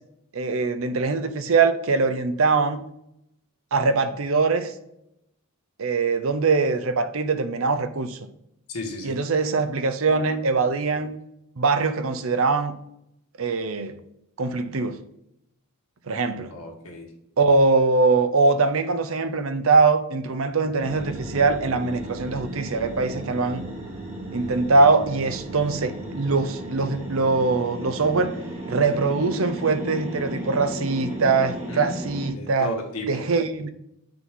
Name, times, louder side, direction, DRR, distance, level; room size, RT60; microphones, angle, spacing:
voice 1, 0.3-2.9 3.7-4.7 5.8-8.2 9.0-11.2 11.6-12.7 13.4-14.0 14.4-15.0 16.1-16.5 17.4-23.6 24.3-28.4 28.7-32.7 33.1-33.7, right 3 dB, 70° right, 0.7 m, -22 dB
voice 2, 8.7-9.2 16.5-17.1 31.6-32.0 32.3-33.2, equal, 85° left, 1.8 m, -33 dB
sound 1, 20.8-32.3, right 1 dB, 30° right, 1.8 m, -35 dB
8.7 x 3.9 x 3.7 m
head